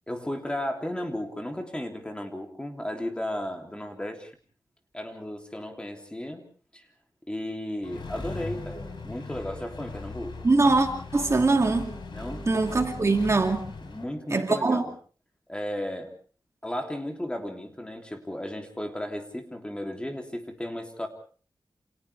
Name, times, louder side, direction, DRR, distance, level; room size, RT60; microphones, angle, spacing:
voice 1, 0.1-4.3 4.9-6.4 6.7-6.9 7.3-10.3 12.1-12.4 13.8-14.9 15.5-16.1 16.6-21.1, left 1 dB, 10° left, 3.1 m, -34 dB
Accelerating revving vroom, 7.8-14.0, left 3 dB, 70° left, 5.3 m, -39 dB
voice 2, 10.4-11.9 12.5-13.6 14.3-14.8, right 3 dB, 35° right, 2.5 m, -22 dB
29.0 x 28.0 x 3.5 m
wide cardioid pair, 135°, 8 cm